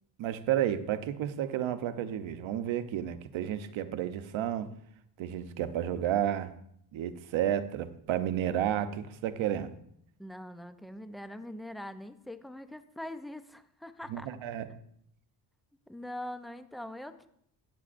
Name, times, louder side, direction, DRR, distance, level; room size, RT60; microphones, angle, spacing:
voice 1, 0.2-4.7 5.2-6.5 6.9-9.7 14.1-14.7, right 10 dB, 75° right, 11 dB, 0.9 m, -31 dB
voice 2, 10.2-14.3 15.9-17.3, left 1 dB, ahead, 9 dB, 0.6 m, -42 dB
14.5 x 8.5 x 2.6 m, 0.71 s
cardioid pair, 105°, 47 cm